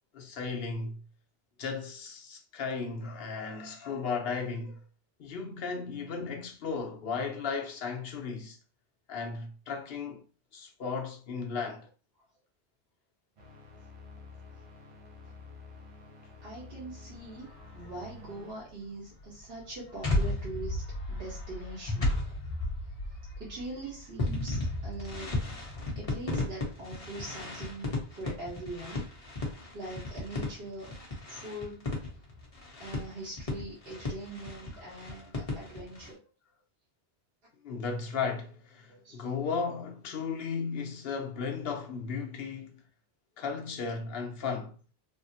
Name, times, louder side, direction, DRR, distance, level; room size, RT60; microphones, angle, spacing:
voice 1, 0.1-1.0 1.6-4.8 5.2-8.6 9.1-10.2 10.5-11.9 27.0-27.1 34.8-35.3 37.6-42.8 43.4-44.7, left 5 dB, 70° left, 0.9 m, -35 dB
sound 1, 13.4-18.5, left 3 dB, 40° right, 0.5 m, -50 dB
voice 2, 16.4-17.5 17.7-20.8 21.1-22.1 23.4-25.3 26.0-29.1 29.7-30.9 31.3-31.9 32.8-36.2 38.9-39.3, right 2 dB, 65° right, 1.2 m, -42 dB
sound 2, 17.4-17.9 19.2-36.1, left 2 dB, 35° left, 0.9 m, -34 dB
3.5 x 2.0 x 2.7 m
omnidirectional pair, 1.1 m